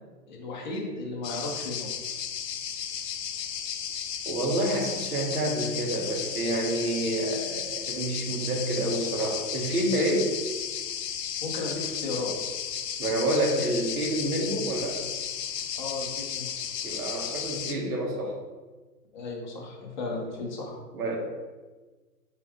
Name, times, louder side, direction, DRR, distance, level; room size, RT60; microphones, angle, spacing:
voice 1, 0.3-1.9 11.4-12.3 15.8-16.5 19.1-20.8, left 3 dB, 30° left, -2 dB, 0.7 m, -34 dB
sound 1, 1.2-17.7, left 8 dB, 85° left, 0.7 m, -34 dB
voice 2, 4.2-10.4 13.0-15.1 16.8-18.4 20.9-21.2, right 1 dB, 65° right, 0 dB, 1.3 m, -28 dB
3.6 x 2.9 x 4.8 m, 1.3 s
hypercardioid pair, 165°, 48 cm